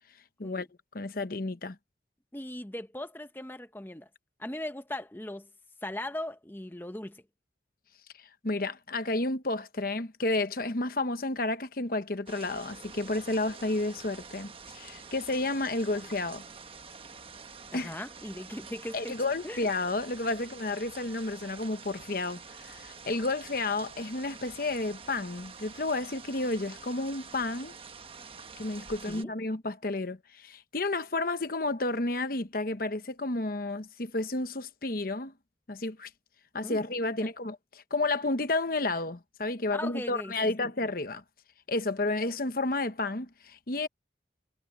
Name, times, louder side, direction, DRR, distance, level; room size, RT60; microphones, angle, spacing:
voice 1, 0.9-1.8 8.4-16.4 17.7-17.9 18.9-27.7 28.6-35.3 35.7-36.1 36.5-41.2 41.7-43.9, left 2 dB, 50° left, 1.0 m, -31 dB
voice 2, 2.3-4.1 4.4-5.5 5.8-7.2 17.7-19.2 19.4-19.6 29.1-29.3 36.6-36.9 39.7-40.5, left 1 dB, 10° left, 0.9 m, -39 dB
sound 1, 12.3-29.2, right 5 dB, 30° right, 1.2 m, -47 dB
head